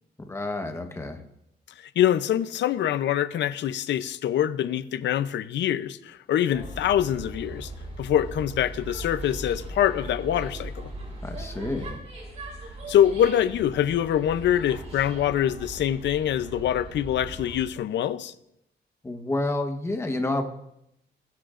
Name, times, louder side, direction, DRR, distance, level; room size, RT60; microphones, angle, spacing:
voice 1, 0.3-1.2 11.2-12.0 19.0-20.4, left 2 dB, 15° left, 1.1 m, -29 dB
voice 2, 2.0-7.7 8.0-10.9 12.9-18.3, left 10 dB, 85° left, 0.6 m, -24 dB
sound 1, 6.5-17.6, right 1 dB, 40° right, 3.5 m, -39 dB
21.5 x 10.5 x 2.5 m
wide cardioid pair, 170°, 18 cm